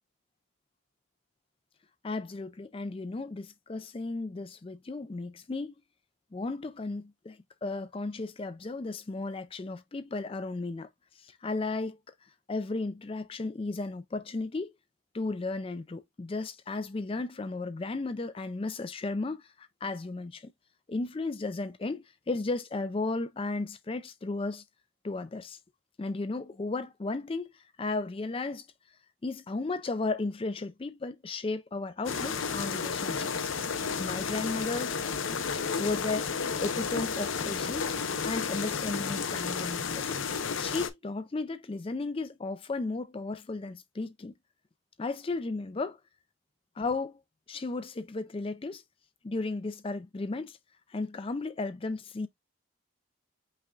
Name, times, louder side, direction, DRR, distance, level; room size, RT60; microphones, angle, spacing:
voice 1, 2.0-5.7 6.3-10.9 11.2-12.0 12.5-14.7 15.1-20.5 20.9-24.6 25.0-25.6 26.0-28.7 29.2-33.5 34.0-35.0 35.8-36.3 36.6-38.0 38.2-40.2 40.6-44.3 45.0-46.0 46.8-47.2 47.5-48.8 49.2-50.6 50.9-52.3, left 3 dB, 25° left, 0.4 m, -34 dB
sound 1, 32.0-40.9, left 5 dB, 70° left, 0.7 m, -32 dB
5.5 x 2.2 x 3.7 m
head